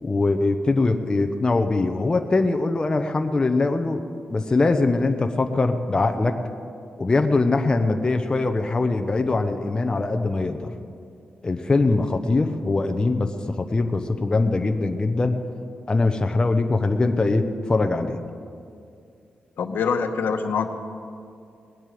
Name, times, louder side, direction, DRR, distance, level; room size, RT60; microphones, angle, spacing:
voice 1, 0.0-4.0 4.3-6.4 7.0-10.7 11.4-15.4 15.9-18.2, left 3 dB, 20° left, 5 dB, 0.8 m, -22 dB
voice 2, 19.6-20.7, left 6 dB, 75° left, 6 dB, 1.1 m, -24 dB
19.5 x 8.0 x 9.1 m, 2.4 s
wide cardioid pair, 145°, 4 cm